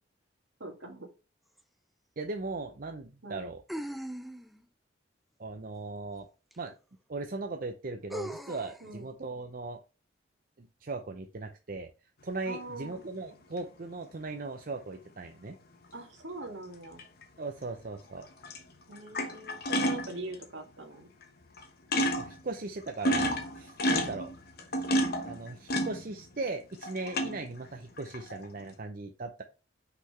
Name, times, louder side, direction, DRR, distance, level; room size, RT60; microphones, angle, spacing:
voice 1, 0.6-1.1 3.2-3.5 8.8-9.1 12.5-13.0 15.9-17.0 18.9-21.1 23.9-24.2, right 2 dB, 70° right, 3 dB, 2.0 m, -42 dB
sound 1, 1.6-1.7 3.7-4.6 6.5-6.6 8.1-8.8, equal, ahead, 0.5 m, -39 dB
voice 2, 2.2-3.6 5.4-6.3 6.6-6.7 7.1-9.8 10.6-11.9 12.2-15.6 17.4-18.3 22.2-24.3 25.3-29.4, right 3 dB, 45° right, 5 dB, 0.6 m, -38 dB
sound 2, 12.9-13.0 17.0-17.2 18.2-18.6 18.9-20.4 21.2-21.3 21.6-21.7 21.9-22.4 22.8-26.5 26.8-27.5 28.0-28.5, equal, 50° left, 1.2 m, -30 dB
5.8 x 5.8 x 3.2 m, 0.32 s
head